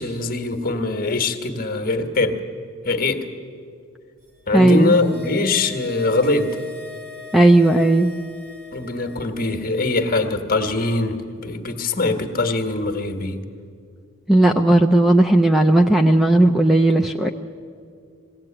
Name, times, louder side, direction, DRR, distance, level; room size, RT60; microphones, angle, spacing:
voice 1, 0.0-2.4 2.8-3.3 4.5-6.5 8.7-13.4, left 3 dB, 40° left, 6 dB, 1.4 m, -22 dB
sound 1, 4.3-9.8 10.0-10.1, left 3 dB, 50° right, 4.2 m, -41 dB
voice 2, 4.5-5.0 7.3-8.1 14.3-17.3, right 1 dB, ahead, 5 dB, 0.5 m, -15 dB
21.0 x 16.5 x 8.8 m, 2.3 s
head